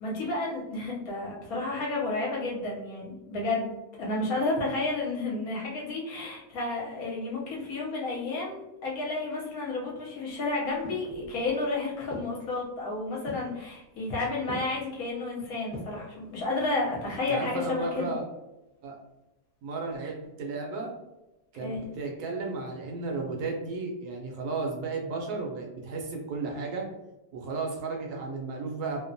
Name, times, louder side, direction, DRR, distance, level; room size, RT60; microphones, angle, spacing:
voice 1, 0.0-3.7 4.0-18.1 21.6-21.8, left 2 dB, 65° left, -3 dB, 1.0 m, -31 dB
sound 1, 10.3-11.6 12.1-12.6 13.3-13.7 14.5-14.9 15.7-16.1 16.7-17.3 17.6-17.7, equal, 15° left, 0.5 m, -42 dB
voice 2, 17.3-18.2 18.8-19.0 19.6-20.9 21.5-26.9 27.3-29.1, right 3 dB, 75° right, 0 dB, 1.0 m, -34 dB
2.8 x 2.1 x 2.5 m, 0.97 s
omnidirectional pair, 1.9 m